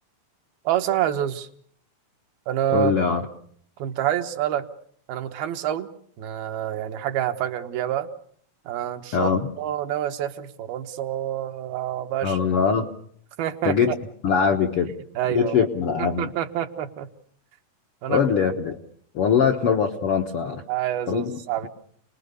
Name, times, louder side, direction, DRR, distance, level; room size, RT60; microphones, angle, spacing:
voice 1, 0.6-1.5 2.5-2.9 3.8-4.6 5.1-5.9 6.2-8.1 8.7-9.3 9.6-12.4 13.4-14.0 15.2-15.7 16.0-17.1 18.0-18.2 20.7-21.7, right 11 dB, 80° right, 6 dB, 3.0 m, -27 dB
voice 2, 2.7-3.3 9.1-9.5 12.2-12.9 13.6-13.9 14.2-14.9 15.3-16.3 18.1-18.8 19.1-20.6 21.1-21.4, left 6 dB, 70° left, 3 dB, 1.4 m, -22 dB
28.0 x 20.5 x 6.8 m, 0.62 s
omnidirectional pair, 4.3 m